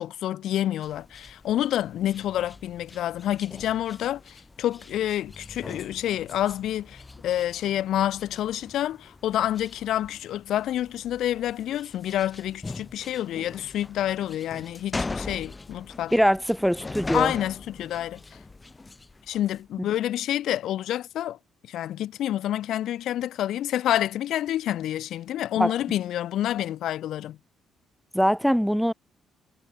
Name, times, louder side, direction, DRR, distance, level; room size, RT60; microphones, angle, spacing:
voice 1, 0.0-16.1 17.1-18.2 19.3-21.4 21.6-27.4, left 12 dB, 75° left, 0.6 m, -28 dB
sound 1, 0.8-19.7, left 3 dB, 20° left, 6.9 m, -41 dB
voice 2, 16.1-17.3 25.6-25.7 28.1-28.9, equal, ahead, 0.3 m, -22 dB
cardioid pair, 90°, 0 cm